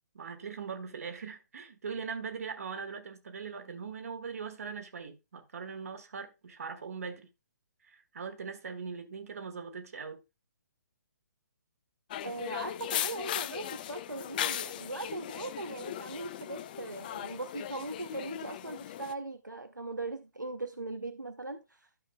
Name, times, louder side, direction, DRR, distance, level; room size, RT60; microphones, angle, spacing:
voice 1, 0.1-7.3 7.8-10.2, right 5 dB, 55° right, 1.4 m, -41 dB
sound 1, 12.1-19.1, left 11 dB, 30° left, 0.4 m, -38 dB
voice 2, 12.2-21.6, right 2 dB, 85° right, 0.7 m, -39 dB
12.0 x 6.5 x 2.2 m
figure-of-eight pair, 130°, 10 cm